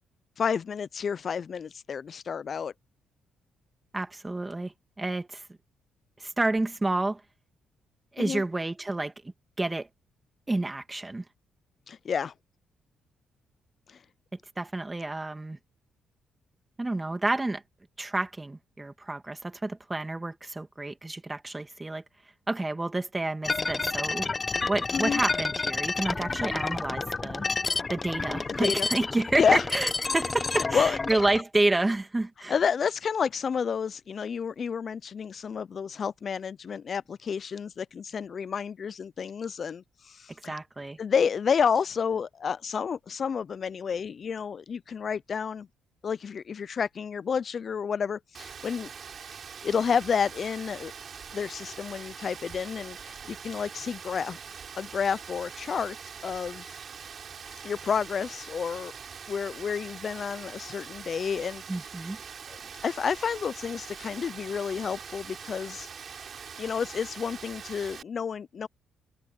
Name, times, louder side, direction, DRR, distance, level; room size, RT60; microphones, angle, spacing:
voice 1, 0.4-2.7 8.2-8.4 11.9-12.3 13.9-14.0 24.9-25.2 28.6-28.9 29.4-29.6 30.5-31.0 32.5-40.6 41.0-45.7 46.0-48.9 49.6-50.9 51.3-54.4 54.8-56.0 56.2-56.8 57.6-58.9 59.3-61.6 62.5-62.6 62.8-65.9 66.6-68.7, left 6 dB, 50° left, 0.3 m, -30 dB
voice 2, 3.9-5.5 6.2-7.2 8.1-9.9 10.5-11.2 14.6-15.6 16.8-17.6 18.0-22.0 22.5-24.3 24.7-27.4 27.9-32.6 40.5-41.0 61.7-62.2, right 2 dB, 15° right, 2.2 m, -29 dB
sound 1, 23.4-31.4, left 3 dB, 30° left, 0.9 m, -30 dB
Rain, 48.3-68.0, right 6 dB, 50° right, 6.1 m, -43 dB
cardioid pair, 90°, 0 cm